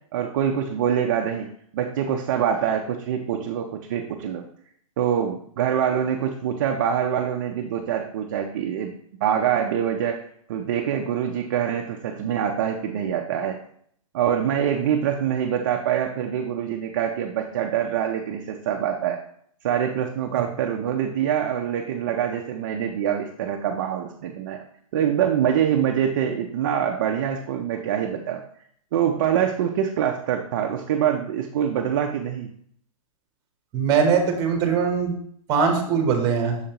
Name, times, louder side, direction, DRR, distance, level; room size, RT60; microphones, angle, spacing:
voice 1, 0.1-1.5 1.7-4.4 5.0-8.9 9.2-10.2 10.5-13.6 14.1-19.2 19.6-24.6 24.9-28.4 28.9-32.5, right 9 dB, 35° right, 3 dB, 0.4 m, -25 dB
voice 2, 33.7-35.2 35.5-36.6, right 6 dB, 20° right, 3 dB, 0.9 m, -21 dB
6.4 x 5.1 x 2.9 m, 0.66 s
hypercardioid pair, 165°, 18 cm